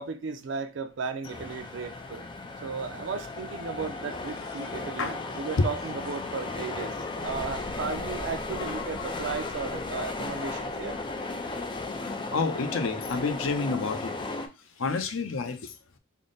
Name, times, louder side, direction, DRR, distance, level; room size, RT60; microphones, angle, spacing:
voice 1, 0.0-2.3 2.6-11.0, right 5 dB, 65° right, 0.4 m, -35 dB
sound 1, 1.2-14.5, left 3 dB, 25° left, 0.3 m, -35 dB
sound 2, 7.2-12.1, equal, 60° left, 1.0 m, -46 dB
voice 2, 12.3-14.1 14.8-15.7, left 4 dB, 85° left, 0.5 m, -29 dB
3.5 x 2.0 x 3.8 m
head